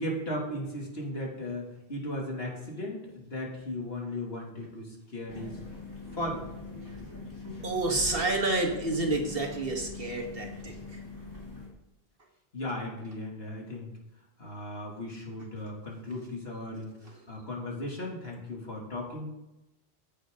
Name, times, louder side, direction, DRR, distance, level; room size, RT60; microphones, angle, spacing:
voice 1, 0.0-5.6 6.1-6.5 12.5-13.9 14.4-19.3, left 1 dB, 70° left, -2 dB, 2.9 m, -36 dB
sound 1, 5.3-11.7, left 3 dB, 15° left, 3.1 m, -42 dB
voice 2, 7.6-11.0 17.0-17.2, right 2 dB, 60° right, 2 dB, 2.0 m, -29 dB
14.5 x 8.5 x 3.8 m, 0.94 s
omnidirectional pair, 1.1 m